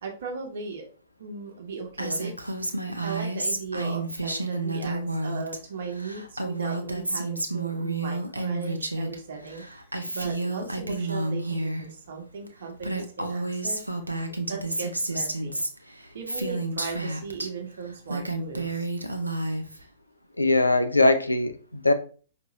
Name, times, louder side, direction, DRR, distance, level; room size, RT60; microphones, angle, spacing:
voice 1, 0.0-0.9 1.2-2.3 3.0-9.6 10.1-13.8 14.5-15.6 16.1-18.9, right 5 dB, 55° right, 1.2 m, -37 dB
Female speech woman speaking, 2.0-5.6 5.8-9.2 9.4-11.8 12.5-12.6 12.8-17.5 17.9-19.8, right 2 dB, 85° right, 0.6 m, -30 dB
voice 2, 20.4-21.9, left 2 dB, 85° left, 0.5 m, -21 dB
5.1 x 2.9 x 3.0 m
figure-of-eight pair, 110°, 0 cm